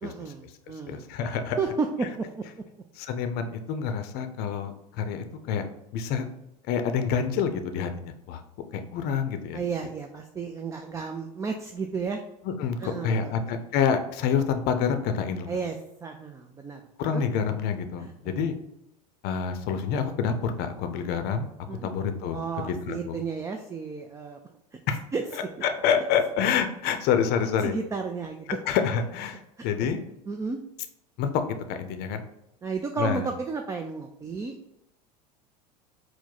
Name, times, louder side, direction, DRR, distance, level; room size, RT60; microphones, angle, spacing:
voice 1, 0.0-1.1 1.6-2.4 9.5-12.2 12.8-13.3 15.5-15.8 16.0-16.8 17.1-17.2 18.0-18.4 21.7-21.9 22.3-24.8 25.1-25.7 27.6-28.6 29.6-29.7 30.3-30.6 32.6-34.6, right 4 dB, 15° right, 4 dB, 0.3 m, -33 dB
voice 2, 0.9-1.6 3.0-5.6 5.9-6.3 6.7-8.4 8.7-9.6 12.4-15.5 17.0-18.6 19.2-21.5 21.8-23.2 24.9-25.0 25.6-27.8 28.5-30.0 31.2-32.2 33.0-33.3, left 7 dB, 50° left, 8 dB, 0.6 m, -27 dB
4.7 x 2.1 x 3.8 m, 0.85 s
hypercardioid pair, 90°, 21 cm